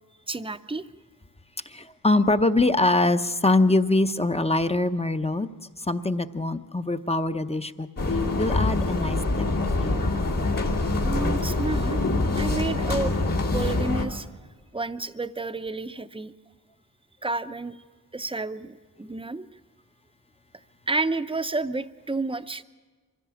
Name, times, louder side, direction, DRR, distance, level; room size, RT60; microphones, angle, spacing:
voice 1, 0.3-0.9 11.0-12.0 12.3-13.1 13.5-14.3 14.7-16.3 17.2-17.8 18.1-19.5 20.9-22.6, right 3 dB, 15° right, 11 dB, 0.7 m, -30 dB
voice 2, 1.7-5.5 5.8-7.9 8.4-9.5 9.8-10.2, left 2 dB, 20° left, 10 dB, 0.7 m, -23 dB
sound 1, 8.0-14.0, left 2 dB, 70° left, 2.6 m, -25 dB
23.5 x 16.0 x 7.0 m, 1.4 s
wide cardioid pair, 70°, 34 cm